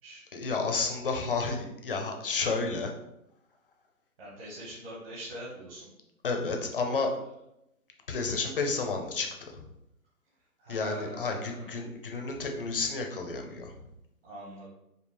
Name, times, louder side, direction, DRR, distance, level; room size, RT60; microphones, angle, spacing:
voice 1, 0.3-2.9 6.2-7.1 8.1-9.7 10.7-13.8, left 4 dB, 40° left, 3 dB, 0.6 m, -31 dB
voice 2, 4.2-5.9 10.6-11.7 14.2-14.7, right 1 dB, 40° right, -7 dB, 1.3 m, -43 dB
5.2 x 2.3 x 3.3 m, 0.84 s
hypercardioid pair, 160°, 45 cm